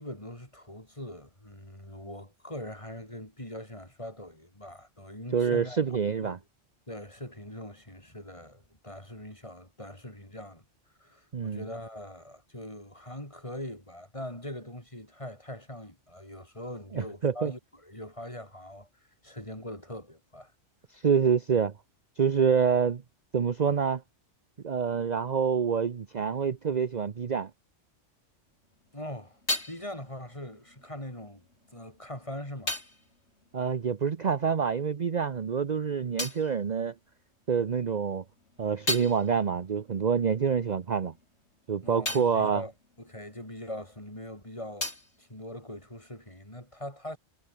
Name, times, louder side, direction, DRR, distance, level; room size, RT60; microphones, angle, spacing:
voice 1, 0.0-6.4 6.9-10.6 11.0-18.9 19.2-20.5 28.9-29.4 29.7-31.4 31.7-32.7 41.8-42.7 43.0-44.9 45.2-47.2, left 1 dB, 25° left, 6.1 m, -42 dB
voice 2, 5.3-6.4 11.3-11.6 16.9-17.5 20.9-21.7 22.2-23.0 23.3-24.0 24.6-27.5 33.5-36.9 37.5-38.2 38.6-41.1 41.7-42.6, right 6 dB, 40° right, 0.8 m, -27 dB
sound 1, 28.6-34.7 34.9-37.6 38.0-44.1 44.3-46.3, left 2 dB, 65° left, 6.2 m, -40 dB
omnidirectional pair, 1.3 m